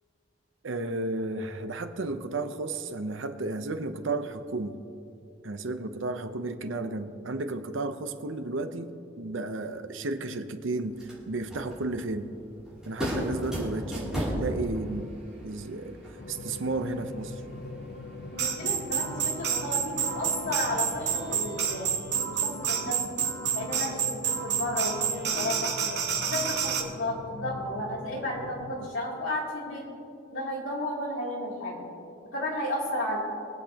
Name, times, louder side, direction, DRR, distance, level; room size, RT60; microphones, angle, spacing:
voice 1, 0.6-4.8 5.4-12.3 12.8-15.1 15.4-16.0 16.3-17.4, right 2 dB, 70° right, 8 dB, 0.7 m, -33 dB
sound 1, 10.8-21.4, equal, 5° right, 2.9 m, -38 dB
sound 2, 16.2-28.9, left 3 dB, 55° left, 0.5 m, -42 dB
voice 2, 18.3-21.9 22.2-23.0 23.5-25.7 26.3-29.8 30.3-31.9 32.3-33.2, left 1 dB, 75° left, -4 dB, 3.0 m, -33 dB
sound 3, 18.4-26.8, right 7 dB, 55° right, 1.1 m, -29 dB
23.0 x 8.4 x 2.9 m, 2.6 s
head